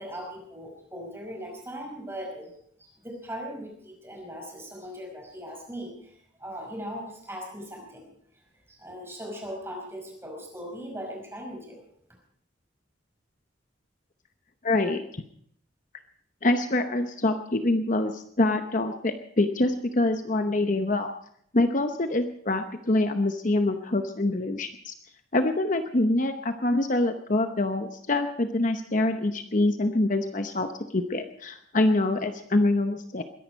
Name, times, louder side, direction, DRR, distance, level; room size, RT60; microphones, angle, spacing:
voice 1, 0.0-2.5 2.8-8.1 8.7-11.9, equal, 15° right, 0 dB, 5.3 m, -39 dB
voice 2, 14.6-15.2 16.4-21.1 21.5-24.9 25.3-33.2, left 2 dB, 40° left, 7 dB, 0.9 m, -25 dB
22.0 x 11.0 x 5.3 m, 0.69 s
head